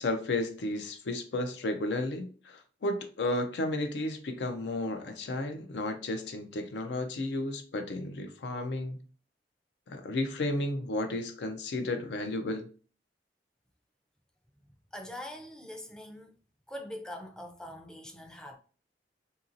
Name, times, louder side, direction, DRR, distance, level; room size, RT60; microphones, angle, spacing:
voice 1, 0.0-9.0 9.9-12.7, left 2 dB, 70° left, 0.4 m, -33 dB
voice 2, 14.9-16.3 16.7-18.6, left 1 dB, 5° left, 0.4 m, -43 dB
2.8 x 2.6 x 2.5 m
head